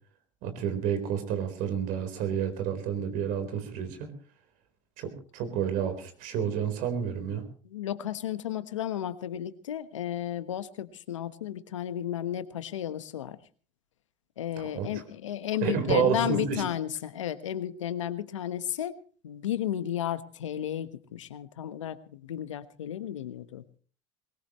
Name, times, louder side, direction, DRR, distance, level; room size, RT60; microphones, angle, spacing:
voice 1, 0.4-4.1 5.0-7.4 14.6-14.9 15.6-16.6, right 8 dB, 65° right, 8 dB, 4.2 m, -30 dB
voice 2, 7.6-13.4 14.4-19.0 19.2-23.6, left 11 dB, 90° left, 12 dB, 1.2 m, -33 dB
21.5 x 19.5 x 3.1 m, 0.41 s
hypercardioid pair, 80°, 15 cm